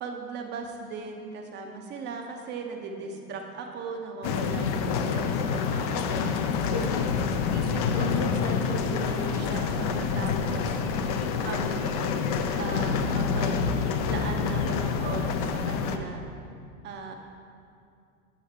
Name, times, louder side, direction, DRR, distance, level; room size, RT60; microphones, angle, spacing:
voice 1, 0.0-6.9 7.5-10.7 11.4-11.9 12.6-16.2 16.8-17.1, right 4 dB, 25° right, 3 dB, 0.6 m, -38 dB
voice 2, 2.8-3.3, left 1 dB, 75° left, -5 dB, 1.9 m, -50 dB
sound 1, 4.2-16.0, left 6 dB, 30° left, 0.3 m, -27 dB
sound 2, 6.8-16.0, right 4 dB, 75° right, 0.7 m, -44 dB
8.8 x 6.3 x 4.5 m, 2.4 s
figure-of-eight pair, 80°, 44 cm